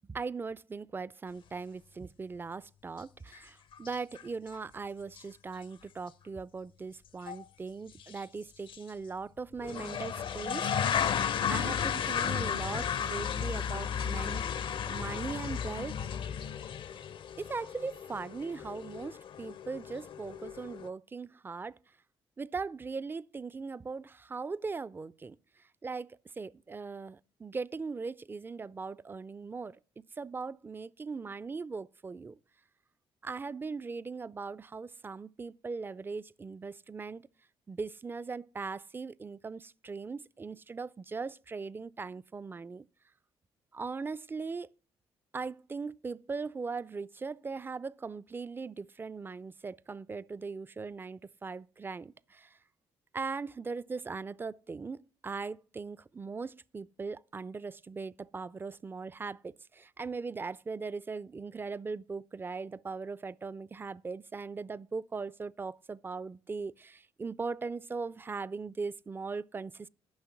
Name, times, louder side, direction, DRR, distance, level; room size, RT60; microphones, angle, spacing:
voice 1, 0.1-14.4 14.9-16.1 17.4-21.7 22.4-25.4 25.8-29.8 30.2-32.4 33.2-37.2 37.7-42.9 43.7-44.7 45.3-52.5 53.1-69.9, right 4 dB, 20° right, 0.3 m, -39 dB
sound 1, 3.3-3.4 3.7-4.2 4.5-4.6 5.2-5.3 5.5-5.6 7.3-7.4 8.0-8.2 8.7-8.8 9.6-20.9, left 8 dB, 55° left, 0.5 m, -34 dB
10.5 x 5.7 x 5.9 m
cardioid pair, 75°, 10 cm